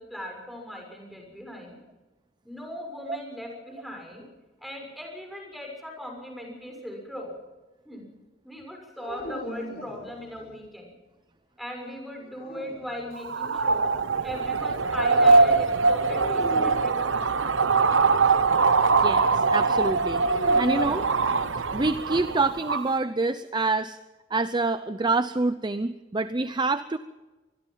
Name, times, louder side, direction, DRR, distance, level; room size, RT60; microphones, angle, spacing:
voice 1, 0.0-1.8 2.4-4.2 4.6-7.3 7.8-8.1 8.4-10.9 11.6-13.9 14.2-17.2, equal, ahead, 2 dB, 6.4 m, -38 dB
sound 1, 9.0-10.6 12.2-13.3 16.2-17.0 20.2-21.9, left 1 dB, 50° left, 4.8 m, -38 dB
sound 2, 13.2-22.9, right 4 dB, 85° right, 1.0 m, -22 dB
voice 2, 18.9-21.1 21.7-24.0 24.3-27.0, right 3 dB, 25° right, 12 dB, 0.7 m, -27 dB
25.5 x 21.0 x 5.7 m, 1.2 s
head